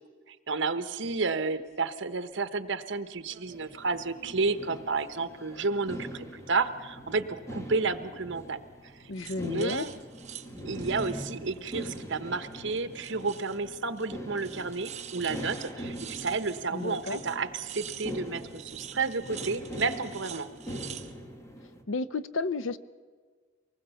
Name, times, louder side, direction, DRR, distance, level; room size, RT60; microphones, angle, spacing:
voice 1, 0.3-9.1 9.4-9.9 10.6-20.5, right 4 dB, 65° right, 11 dB, 1.1 m, -31 dB
sound 1, 1.5-1.7 3.2-3.5 3.9-4.8 5.2-6.2 7.9-8.3 9.1-12.2 12.5-13.7 14.0-14.1 14.4-21.1, right 9 dB, 35° right, 0.9 m, -47 dB
sound 2, 3.5-21.8, equal, 15° left, 1.6 m, -43 dB
voice 2, 9.1-9.9 16.7-17.2 21.9-22.8, left 3 dB, 75° left, 15 dB, 0.7 m, -32 dB
24.5 x 20.0 x 7.0 m, 1.5 s
head